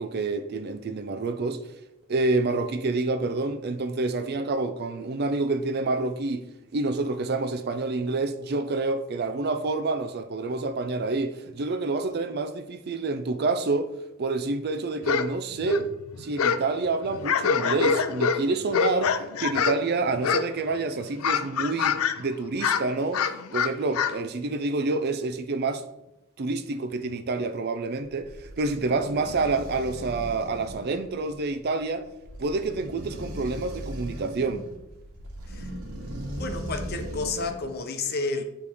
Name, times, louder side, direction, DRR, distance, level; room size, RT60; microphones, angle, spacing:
voice 1, 0.0-1.6 2.1-6.5 6.7-13.9 14.2-15.9 16.2-23.3 23.5-25.8 26.4-32.0 32.4-34.7, right 3 dB, 50° right, 0.5 m, -28 dB
sound 1, 15.0-15.3 15.5-16.7 17.0-19.9 20.2-20.7 21.0-22.2 22.5-24.2, left 6 dB, 80° left, 0.4 m, -25 dB
sound 2, 28.1-37.7, equal, 85° right, 1.2 m, -38 dB
voice 2, 36.4-38.4, left 3 dB, 45° left, 0.7 m, -31 dB
9.0 x 3.2 x 3.4 m
head